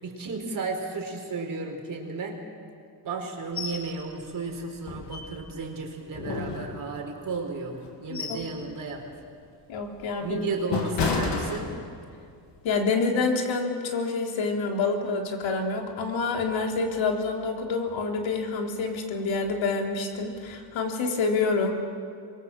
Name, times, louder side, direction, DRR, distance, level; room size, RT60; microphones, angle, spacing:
voice 1, 0.0-2.4 3.0-9.0 10.2-11.7, right 4 dB, 45° right, 2 dB, 4.7 m, -33 dB
sound 1, 3.6-3.9 4.2-4.3 4.8-5.6 6.1-7.2 7.7-8.5 8.9-9.2 9.7-12.2 12.6-12.8, left 4 dB, 65° left, 3.4 m, -31 dB
voice 2, 9.7-10.4 12.6-21.7, left 4 dB, 85° left, 2 dB, 3.6 m, -27 dB
26.0 x 23.0 x 7.6 m, 2.3 s
cardioid pair, 130°, 45 cm